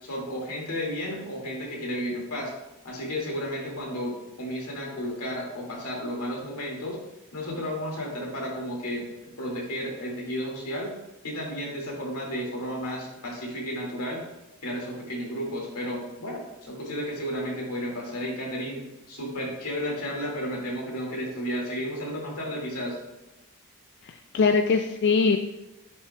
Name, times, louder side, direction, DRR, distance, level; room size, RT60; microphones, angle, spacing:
voice 1, 0.0-2.5 2.8-7.0 7.3-10.9 11.2-14.2 14.6-23.0, equal, 85° left, -2 dB, 2.1 m, -33 dB
voice 2, 24.0-25.4, left 4 dB, 50° left, 6 dB, 0.3 m, -22 dB
9.7 x 5.7 x 2.2 m, 0.98 s
head